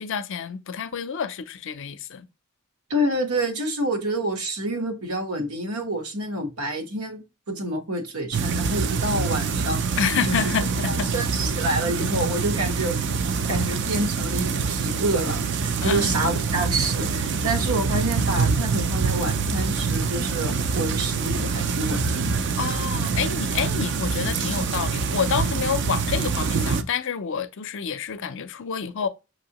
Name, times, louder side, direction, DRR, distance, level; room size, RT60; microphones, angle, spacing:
voice 1, 0.0-2.3 10.0-11.1 15.8-16.1 22.6-29.1, left 7 dB, 60° left, 0.5 m, -28 dB
voice 2, 2.9-7.2 7.5-9.9 10.3-10.4 10.8-13.0 13.5-22.4, right 1 dB, 85° right, 1.2 m, -28 dB
sound 1, 8.3-26.8, right 5 dB, 50° right, 0.4 m, -25 dB
5.8 x 2.7 x 2.9 m
head